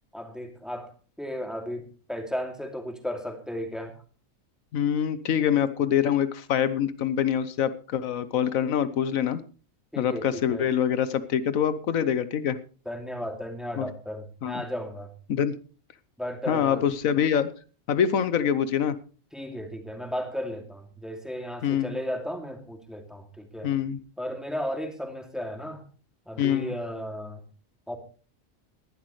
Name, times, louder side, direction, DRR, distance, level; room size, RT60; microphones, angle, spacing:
voice 1, 0.1-0.9 1.2-3.9 9.9-10.7 12.9-15.1 16.2-16.8 19.3-23.7 24.2-25.8 26.3-27.4 27.9-28.0, equal, ahead, 4 dB, 2.5 m, -34 dB
voice 2, 4.7-9.4 10.0-12.6 13.8-13.9 14.4-14.6 15.3-15.5 16.5-17.5 17.9-18.9 21.6-22.0 23.6-24.0 26.4-26.7, left 9 dB, 85° left, 14 dB, 1.3 m, -25 dB
19.5 x 11.5 x 3.2 m, 0.37 s
omnidirectional pair, 1.4 m